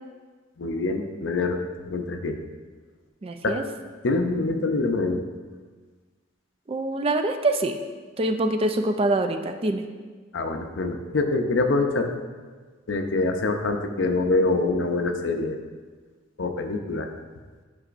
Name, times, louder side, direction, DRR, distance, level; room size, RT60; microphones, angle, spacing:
voice 1, 0.6-1.6 1.8-2.4 3.4-3.6 4.0-5.2 10.3-12.1 12.9-15.6 16.4-17.1, left 3 dB, 75° left, 5 dB, 0.6 m, -25 dB
voice 2, 3.2-3.6 6.7-7.8 8.2-9.8, right 2 dB, 30° right, 6 dB, 0.4 m, -24 dB
9.8 x 5.3 x 2.5 m, 1.4 s
head